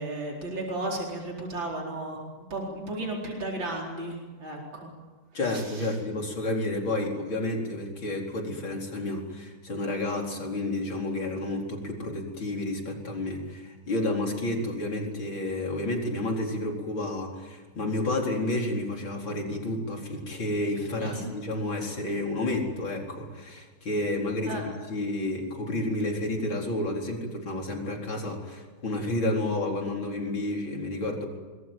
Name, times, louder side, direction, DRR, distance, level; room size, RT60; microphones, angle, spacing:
voice 1, 0.0-2.2 2.5-4.9 21.0-21.3 24.5-24.6, right 2 dB, 75° right, -2 dB, 5.1 m, -34 dB
voice 2, 5.3-31.3, left 1 dB, 85° left, 1 dB, 5.2 m, -30 dB
25.5 x 22.0 x 9.1 m, 1.3 s
omnidirectional pair, 2.1 m